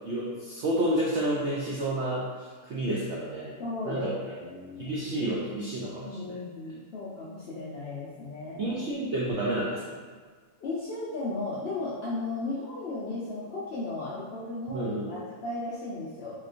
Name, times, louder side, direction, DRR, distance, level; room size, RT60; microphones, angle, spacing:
voice 1, 0.0-3.5 3.8-4.1 4.8-6.3 8.6-9.8 14.7-15.1, right 1 dB, 85° right, -5 dB, 0.6 m, -30 dB
voice 2, 3.6-4.9 5.9-8.8 10.6-16.4, left 2 dB, 70° left, -9 dB, 0.6 m, -35 dB
3.1 x 2.9 x 2.5 m, 1.5 s
omnidirectional pair, 1.8 m